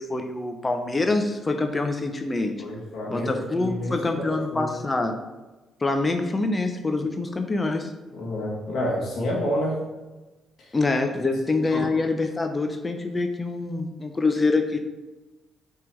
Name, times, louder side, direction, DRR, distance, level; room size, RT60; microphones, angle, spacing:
voice 1, 0.0-2.5 3.1-5.2 5.8-7.9 10.7-14.8, left 3 dB, 25° left, 6 dB, 0.8 m, -25 dB
voice 2, 2.6-4.2 4.5-4.7 8.1-9.8 11.7-11.8, left 1 dB, 60° left, -4 dB, 1.6 m, -29 dB
5.8 x 3.8 x 4.6 m, 1.1 s
hypercardioid pair, 45°, 0 cm